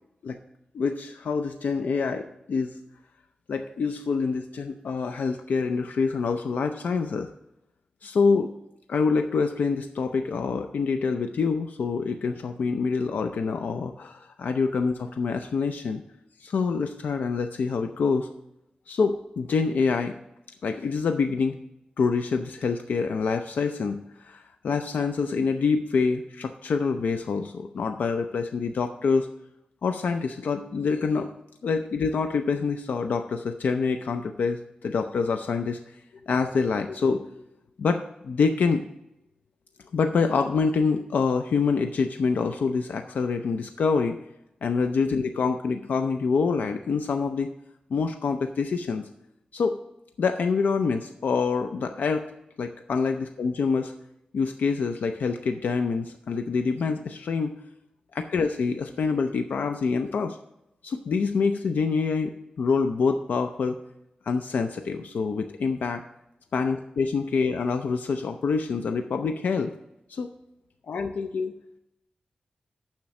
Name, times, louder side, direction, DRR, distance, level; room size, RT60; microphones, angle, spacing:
voice 1, 0.7-2.7 3.5-7.3 8.0-8.5 8.9-16.0 16.4-18.3 18.9-20.1 20.6-21.6 22.0-29.3 29.8-31.3 31.6-35.8 36.3-37.3 37.8-38.9 39.9-44.2 44.6-47.5 47.9-49.1 49.5-49.8 50.2-52.3 52.6-53.9 54.3-57.5 58.1-60.4 60.8-63.8 64.3-66.0 66.5-69.7 70.1-70.3 70.9-71.5, left 5 dB, 85° left, 6 dB, 0.5 m, -26 dB
7.3 x 5.9 x 6.3 m, 0.85 s
wide cardioid pair, 100°, 3 cm